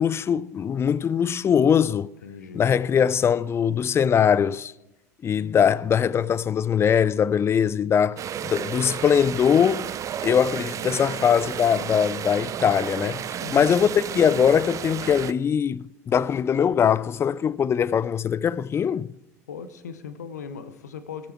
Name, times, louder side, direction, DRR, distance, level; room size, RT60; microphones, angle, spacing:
voice 1, 0.0-2.1 2.5-4.7 5.2-9.9 10.2-13.2 13.5-19.1, left 8 dB, 30° left, 0.4 m, -21 dB
voice 2, 2.2-2.7 13.4-13.9 19.5-21.3, left 6 dB, 85° left, 0.7 m, -39 dB
sound 1, 8.2-15.3, right 9 dB, 35° right, 0.5 m, -32 dB
18.0 x 6.9 x 4.5 m
hypercardioid pair, 70°, 9 cm